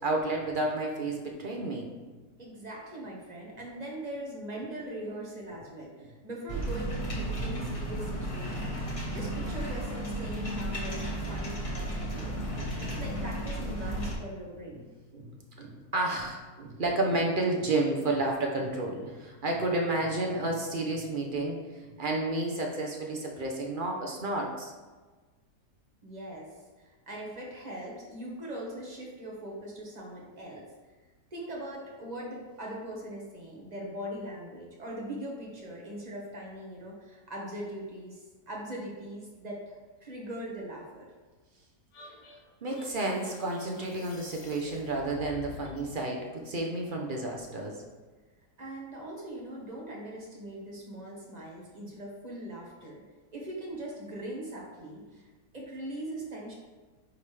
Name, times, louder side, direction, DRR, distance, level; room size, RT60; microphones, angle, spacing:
voice 1, 0.0-2.1 6.0-6.1 8.6-8.7 9.0-9.1 12.1-12.2 12.6-12.8 15.1-24.7 42.6-47.8, right 2 dB, 45° right, 0 dB, 0.6 m, -31 dB
voice 2, 2.4-8.8 9.1-12.4 12.8-14.9 26.0-30.7 31.3-41.1 48.6-53.0 53.3-55.3 55.5-56.5, right 1 dB, 25° right, -3 dB, 1.3 m, -41 dB
sound 1, 6.5-14.1, right 1 dB, 25° left, 1.0 m, -34 dB
sound 2, 41.9-45.9, left 4 dB, 70° left, 1.5 m, -48 dB
9.6 x 3.6 x 3.3 m, 1.3 s
omnidirectional pair, 1.8 m